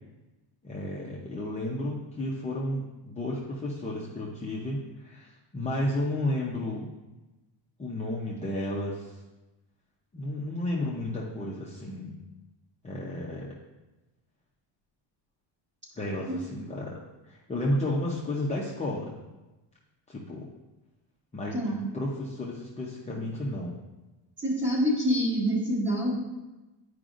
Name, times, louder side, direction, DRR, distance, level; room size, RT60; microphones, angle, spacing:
voice 1, 0.6-6.9 7.8-9.2 10.1-12.2 12.8-13.5 16.0-17.0 17.2-19.1 20.1-20.5 21.3-23.8, left 1 dB, 15° left, -5 dB, 0.7 m, -32 dB
voice 2, 24.4-26.1, equal, 25° right, -5 dB, 2.0 m, -26 dB
10.5 x 5.0 x 2.5 m, 1.1 s
cardioid pair, 155°, 48 cm